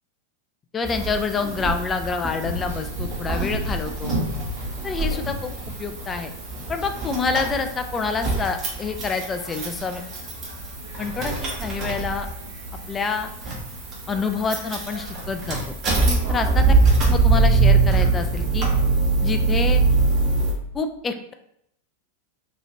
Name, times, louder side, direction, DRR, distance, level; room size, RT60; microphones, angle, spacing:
voice 1, 0.7-4.2 4.8-5.5 5.8-6.3 6.7-10.0 11.0-12.3 12.9-13.3 14.1-15.8 16.3-16.6 17.0-18.7 19.2-19.8 20.7-21.3, left 4 dB, 20° left, 6 dB, 0.3 m, -27 dB
sound 1, 0.8-20.5, right 3 dB, 35° right, 0.7 m, -24 dB
sound 2, 2.4-15.6, right 1 dB, 70° right, 0.8 m, -36 dB
2.9 x 2.4 x 2.7 m, 0.75 s
figure-of-eight pair, 90°, 0 cm